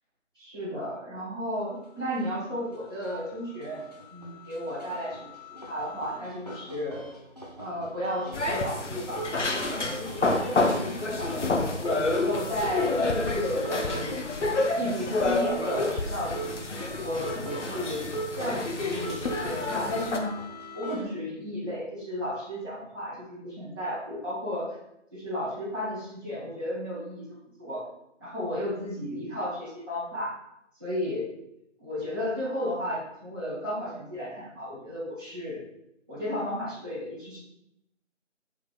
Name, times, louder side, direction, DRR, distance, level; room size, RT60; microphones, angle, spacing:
voice 1, 0.3-3.8 4.1-5.3 5.6-7.1 7.6-11.8 12.1-14.2 14.7-16.5 16.9-18.1 18.4-20.4 20.7-24.8 25.1-27.9 28.2-30.4 30.8-31.3 31.8-35.6 36.1-37.4, equal, 20° right, -13 dB, 0.8 m, -33 dB
sound 1, 1.5-1.6 2.0-21.0, right 2 dB, 35° left, 0.5 m, -40 dB
sound 2, 8.3-20.2, left 3 dB, 70° left, 0.7 m, -29 dB
5.7 x 3.5 x 2.3 m, 0.81 s
figure-of-eight pair, 165°, 37 cm